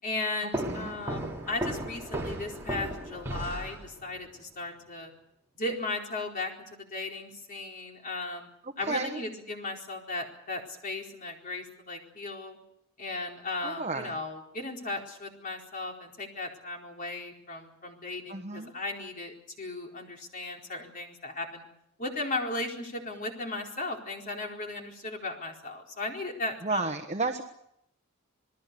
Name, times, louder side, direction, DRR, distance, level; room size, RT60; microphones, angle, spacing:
voice 1, 0.0-5.1 5.6-6.5 6.8-8.5 8.8-12.6 13.0-21.6 22.0-26.9, left 2 dB, 40° left, 1 dB, 4.3 m, -36 dB
sound 1, 0.5-4.2, right 1 dB, 10° right, 4.6 m, -35 dB
voice 2, 8.6-9.2 13.6-14.1 18.3-18.7 26.6-27.4, right 3 dB, 30° right, 4 dB, 1.3 m, -32 dB
28.0 x 19.5 x 6.9 m, 0.77 s
head